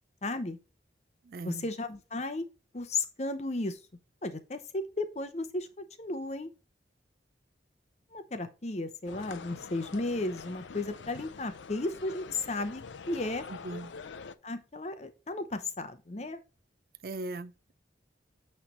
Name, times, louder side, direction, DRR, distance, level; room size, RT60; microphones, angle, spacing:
voice 1, 0.2-0.6 1.4-2.5 2.7-3.8 4.2-6.5 8.1-13.5 14.4-16.4, left 2 dB, 35° left, 0.7 m, -34 dB
voice 2, 1.2-1.7 13.5-13.9 17.0-17.7, right 2 dB, 55° right, 0.4 m, -39 dB
sound 1, 9.1-14.4, left 5 dB, 85° left, 0.5 m, -45 dB
8.9 x 3.3 x 4.0 m
head